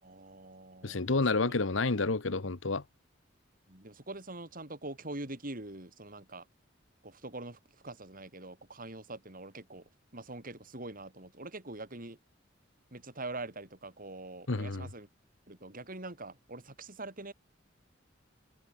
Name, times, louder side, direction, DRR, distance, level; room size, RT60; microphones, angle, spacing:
voice 1, 0.0-1.6 3.7-6.5 7.0-12.2 12.9-15.1 15.5-17.3, right 2 dB, 45° right, 4.8 m, -44 dB
voice 2, 0.8-2.8 14.5-14.9, left 3 dB, 90° left, 1.2 m, -29 dB
head